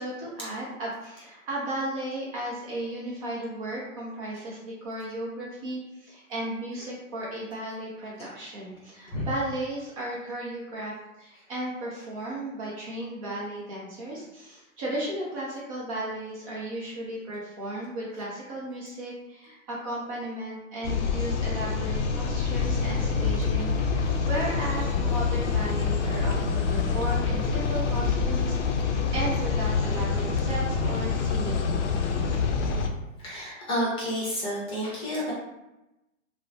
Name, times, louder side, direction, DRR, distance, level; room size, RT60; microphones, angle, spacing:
voice 1, 0.0-31.8, right 1 dB, 25° right, -5 dB, 0.5 m, -35 dB
sound 1, 20.8-32.9, left 5 dB, 65° left, 0.5 m, -26 dB
voice 2, 33.2-35.3, equal, 15° left, -5 dB, 0.7 m, -30 dB
3.0 x 2.0 x 2.6 m, 0.95 s
hypercardioid pair, 130°, 40 cm